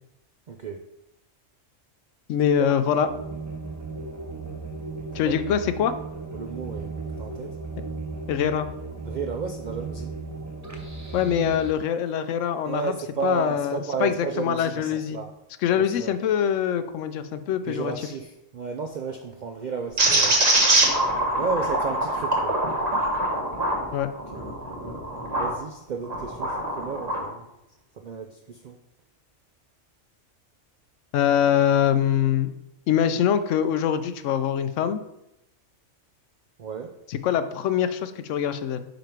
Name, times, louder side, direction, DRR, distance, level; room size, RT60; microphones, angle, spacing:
voice 1, 0.5-0.8 2.6-2.7 5.2-5.4 6.3-7.6 9.0-10.1 12.7-15.3 15.7-16.1 17.6-20.4 21.4-22.6 24.3-24.4 25.4-27.5 28.0-28.8 36.6-37.0, right 5 dB, 65° right, 4 dB, 0.4 m, -33 dB
voice 2, 2.3-3.1 5.1-5.9 8.3-8.7 11.1-12.9 13.2-15.2 15.6-17.9 23.9-24.1 31.1-32.5 32.9-35.0 37.1-38.9, left 9 dB, 80° left, 11 dB, 0.9 m, -24 dB
sound 1, 3.1-11.7, right 3 dB, 20° right, 0.6 m, -36 dB
sound 2, 20.0-25.5 26.0-27.2, right 1 dB, 35° right, 1.2 m, -23 dB
5.2 x 5.2 x 4.5 m, 0.85 s
omnidirectional pair, 1.3 m